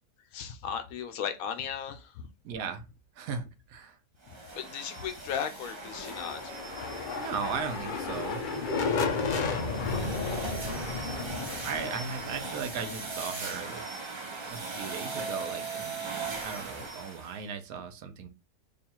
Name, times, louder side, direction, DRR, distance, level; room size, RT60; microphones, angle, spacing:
voice 1, 0.3-2.3 4.5-6.4, left 7 dB, 80° left, 1.1 m, -36 dB
voice 2, 2.4-2.8 3.2-3.4 3.7-4.0 7.1-8.4 11.6-13.9 14.4-16.0 16.4-18.3, right 6 dB, 85° right, 1.1 m, -37 dB
sound 1, 4.2-17.4, right 3 dB, 50° right, 0.3 m, -39 dB
sound 2, 5.8-13.6, left 4 dB, 60° left, 0.5 m, -33 dB
3.1 x 2.4 x 4.3 m
omnidirectional pair, 1.5 m